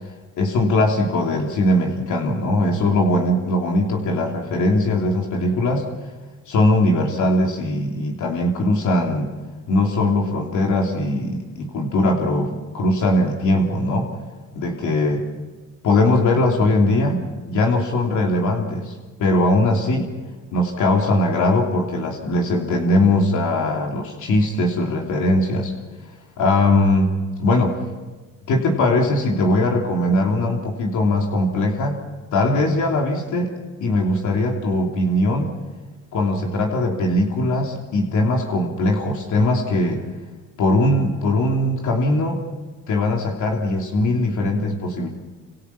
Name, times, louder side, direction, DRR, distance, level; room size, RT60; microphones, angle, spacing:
voice 1, 0.4-5.9 6.5-9.3 9.7-14.1 14.5-15.3 15.8-18.9 19.2-20.1 20.5-25.7 26.4-27.1 27.4-27.7 28.5-33.5 33.8-35.5 36.1-40.1 40.6-42.4 42.9-45.1, left 1 dB, 80° left, 0 dB, 3.1 m, -20 dB
27.5 x 26.5 x 5.8 m, 1.3 s
cardioid pair, 90°, 30 cm